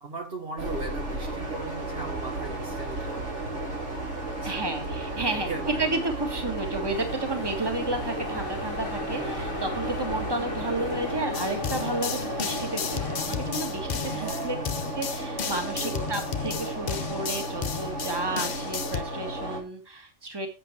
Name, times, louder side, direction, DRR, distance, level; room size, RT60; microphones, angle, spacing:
voice 1, 0.0-3.4 4.3-4.6 5.1-5.9 9.1-9.5 14.1-14.8 15.7-16.1, right 3 dB, 50° right, 3 dB, 1.6 m, -38 dB
sound 1, 0.6-19.6, right 2 dB, 75° right, 3.6 m, -34 dB
voice 2, 4.4-5.5 5.8-14.6 14.9-20.5, right 2 dB, 20° right, 5 dB, 1.8 m, -32 dB
sound 2, 6.9-13.2, left 3 dB, 25° left, 1.6 m, -36 dB
sound 3, 11.3-19.0, left 7 dB, 45° left, 0.7 m, -33 dB
8.5 x 7.6 x 4.5 m, 0.31 s
omnidirectional pair, 1.3 m